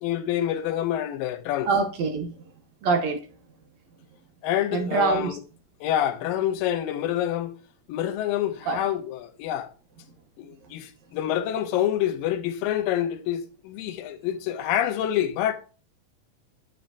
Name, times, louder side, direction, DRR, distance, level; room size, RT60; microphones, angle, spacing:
voice 1, 0.0-1.7 4.4-5.4 5.8-7.6 7.9-9.7 10.4-15.5, left 11 dB, 90° left, 2.5 m, -27 dB
voice 2, 1.7-2.4 2.8-3.2 4.7-5.4 8.7-8.8, right 4 dB, 65° right, 1.9 m, -24 dB
8.8 x 5.8 x 2.6 m
omnidirectional pair, 4.0 m